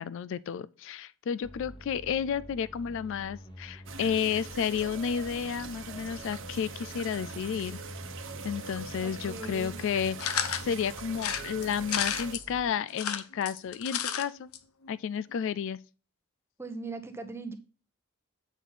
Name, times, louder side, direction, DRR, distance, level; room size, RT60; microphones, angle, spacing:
voice 1, 0.0-7.8 8.4-14.5 14.9-15.8, left 7 dB, 60° left, 0.3 m, -32 dB
sound 1, 1.4-12.6, equal, 20° left, 1.0 m, -47 dB
sound 2, 3.9-12.4, right 5 dB, 60° right, 1.0 m, -43 dB
voice 2, 9.0-9.8 16.6-17.5, right 3 dB, 10° right, 0.9 m, -39 dB
sound 3, 10.2-10.7 11.2-12.4 12.9-14.2 14.5-14.6 14.8-14.9, left 8 dB, 80° left, 0.9 m, -31 dB
8.3 x 6.0 x 4.0 m
head